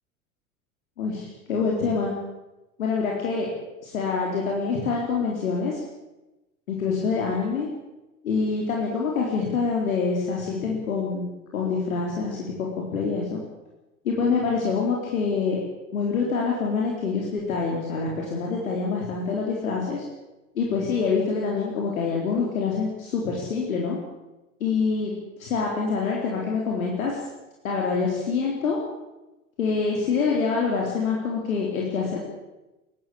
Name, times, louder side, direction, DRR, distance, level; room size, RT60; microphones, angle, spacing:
voice 1, 1.0-2.1 2.8-3.5 3.8-5.8 6.7-7.7 8.2-12.4 12.8-13.4 14.0-15.6 15.9-20.0 20.6-24.0 24.6-25.1 25.4-27.2 27.6-28.8 29.6-32.2, left 5 dB, 75° left, -2 dB, 4.2 m, -26 dB
21.0 x 16.5 x 8.8 m, 1.0 s
figure-of-eight pair, 75°, 42 cm